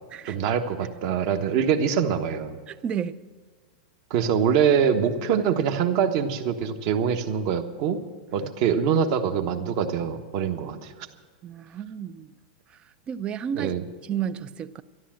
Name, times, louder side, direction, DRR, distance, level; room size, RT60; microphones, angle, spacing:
voice 1, 0.2-2.6 4.1-8.0 8.3-10.9 13.5-13.8, right 7 dB, 45° right, 1.3 m, -24 dB
voice 2, 2.7-3.2 8.4-8.5 11.4-12.3 13.1-13.7 14.0-14.8, right 8 dB, 20° right, 0.5 m, -32 dB
13.0 x 12.0 x 7.6 m
supercardioid pair, 160°, 5 cm